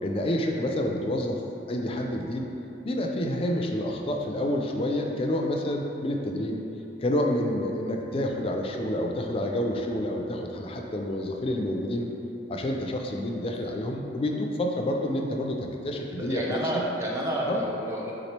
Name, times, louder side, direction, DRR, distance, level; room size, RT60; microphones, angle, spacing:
voice 1, 0.0-1.4 1.7-2.5 2.8-6.6 7.0-12.1 12.5-16.8 17.4-17.6, left 1 dB, 30° left, 1 dB, 0.4 m, -28 dB
voice 2, 16.1-18.1, right 1 dB, 15° right, -4 dB, 0.6 m, -30 dB
6.0 x 3.0 x 2.9 m, 3.0 s
head